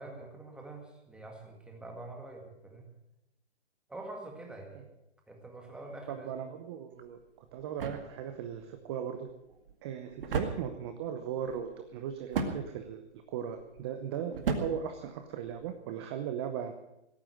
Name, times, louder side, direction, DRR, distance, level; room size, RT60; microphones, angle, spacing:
voice 1, 0.0-2.9 3.9-4.9 5.3-6.3, right 2 dB, ahead, 1 dB, 1.8 m, -45 dB
voice 2, 6.1-9.3 9.8-13.0 13.3-16.7, right 8 dB, 20° right, 7 dB, 0.8 m, -38 dB
sound 1, 6.9-15.8, right 4 dB, 50° right, 2.1 m, -39 dB
17.0 x 9.2 x 7.7 m, 0.91 s
hypercardioid pair, 145°, 34 cm